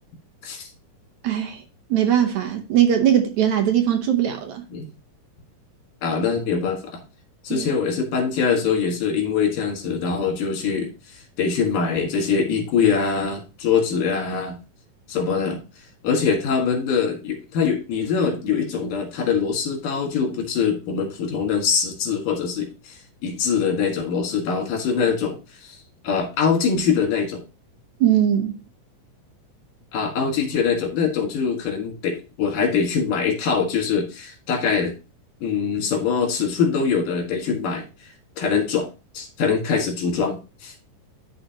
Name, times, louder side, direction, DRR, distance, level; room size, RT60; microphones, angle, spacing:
voice 1, 1.2-1.6 1.9-4.6 7.5-7.7 28.0-28.5, right 10 dB, 70° right, 2.0 m, -20 dB
voice 2, 6.0-7.0 7.4-10.9 11.4-14.6 15.1-15.6 16.0-25.8 26.0-27.4 29.9-34.9 35.4-37.8 38.4-38.9 39.1-40.7, left 6 dB, 75° left, 3.6 m, -23 dB
12.5 x 4.3 x 2.9 m
omnidirectional pair, 3.9 m